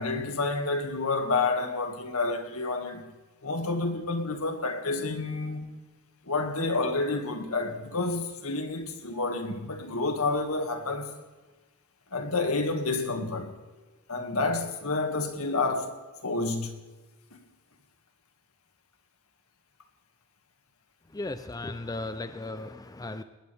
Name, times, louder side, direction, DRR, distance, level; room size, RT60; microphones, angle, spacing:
voice 1, 0.0-3.0 3.4-5.7 6.2-11.1 12.1-13.5 14.1-16.7 17.3-17.4, left 3 dB, 70° left, 2.1 m, -29 dB
voice 2, 21.1-23.2, left 2 dB, 15° left, 0.5 m, -36 dB
20.0 x 19.5 x 3.5 m
head